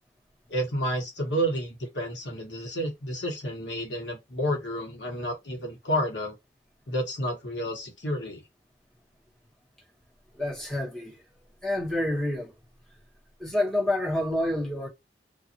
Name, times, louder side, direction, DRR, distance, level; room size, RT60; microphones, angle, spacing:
voice 1, 0.5-6.4 6.9-8.4, equal, 80° left, 1.2 m, -30 dB
voice 2, 10.4-11.2 11.6-12.5 13.4-14.9, left 1 dB, 5° left, 1.1 m, -28 dB
2.6 x 2.5 x 2.6 m
head